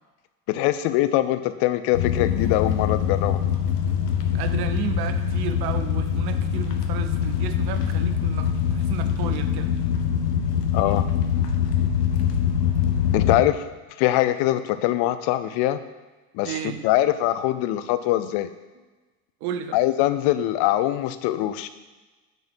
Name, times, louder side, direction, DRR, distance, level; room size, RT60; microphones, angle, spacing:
voice 1, 0.5-3.4 10.7-11.1 13.1-13.6 14.0-15.8 16.3-18.5 19.7-21.7, left 14 dB, 60° left, 12 dB, 0.7 m, -23 dB
sound 1, 1.9-13.4, left 8 dB, 85° left, 0.9 m, -24 dB
voice 2, 4.3-9.7 16.4-16.8 19.4-19.8, right 9 dB, 55° right, 8 dB, 0.9 m, -33 dB
6.7 x 4.2 x 6.2 m, 1.2 s
hypercardioid pair, 70°, 46 cm